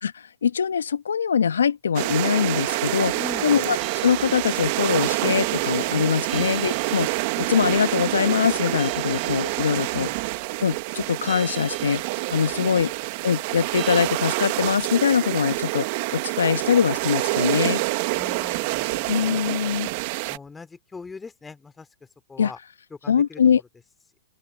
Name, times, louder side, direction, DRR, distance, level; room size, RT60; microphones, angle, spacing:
voice 1, 0.0-3.1 3.4-3.8 4.0-10.1 10.6-12.0 12.3-12.9 13.2-15.9 16.1-17.8 19.1-19.9 22.4-22.5 23.1-23.6, left 7 dB, 80° left, 1.4 m, -23 dB
sound 1, 1.9-20.4, right 25 dB, 50° right, 1.4 m, -27 dB
voice 2, 3.1-3.6 6.3-6.5 10.0-10.2 12.6-12.8 18.1-19.9 20.3-21.9 22.3-22.6 22.9-23.4, left 4 dB, 10° left, 2.7 m, -41 dB
sound 2, 3.8-14.1, right 7 dB, 20° right, 5.1 m, -45 dB
open air
hypercardioid pair, 115°, 0 cm